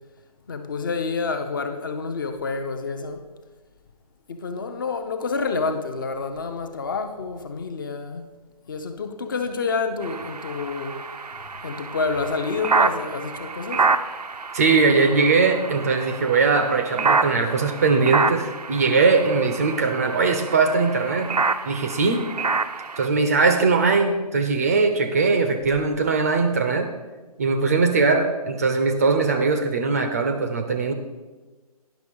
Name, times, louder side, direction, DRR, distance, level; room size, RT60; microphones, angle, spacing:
voice 1, 0.5-3.3 4.3-8.2 8.7-11.1 11.6-13.8, left 4 dB, 35° left, 0.7 m, -28 dB
sound 1, 10.0-23.1, right 4 dB, 80° right, 0.6 m, -27 dB
voice 2, 14.5-21.3 21.7-22.3 23.0-26.9 27.4-30.9, right 4 dB, 25° right, 0.5 m, -20 dB
10.5 x 6.0 x 5.4 m
figure-of-eight pair, 145°, 20 cm